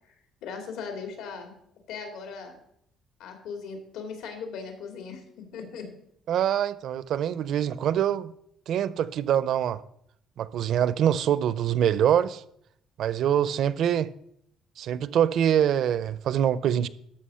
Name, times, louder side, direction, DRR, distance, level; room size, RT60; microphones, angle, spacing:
voice 1, 0.4-1.5 1.9-2.6 3.2-5.2 5.5-5.9, left 5 dB, 90° left, 2.4 m, -38 dB
voice 2, 6.3-8.3 8.7-9.8 10.4-12.4 13.0-14.1 14.8-16.9, right 10 dB, 55° right, 0.5 m, -24 dB
12.5 x 5.9 x 5.6 m
cardioid pair, 180°, 0 cm